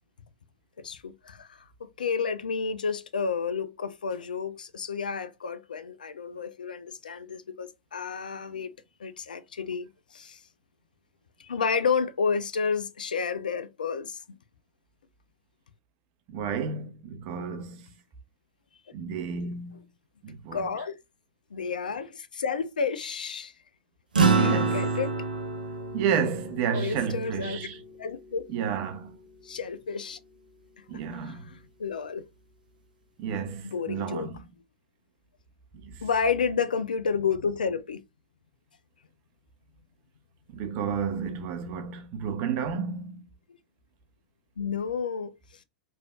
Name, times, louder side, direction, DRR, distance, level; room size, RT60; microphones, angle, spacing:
voice 1, 0.8-1.7 2.0-8.7 9.0-10.4 11.4-14.2 20.5-20.9 21.5-23.5 24.3-25.1 26.7-27.7 28.0-28.4 29.4-30.2 30.9-32.2 33.6-34.3 36.0-38.0 44.6-45.3, left 5 dB, 70° left, 0.4 m, -31 dB
voice 2, 16.3-17.8 18.9-19.8 20.2-20.7 24.3-24.8 25.9-27.8 28.5-29.1 30.9-31.5 33.2-34.4 35.8-36.0 40.5-43.2, right 7 dB, 40° right, 0.7 m, -31 dB
sound 1, 24.1-28.8, right 4 dB, 75° right, 0.8 m, -28 dB
3.3 x 2.6 x 2.3 m
figure-of-eight pair, 100°, 5 cm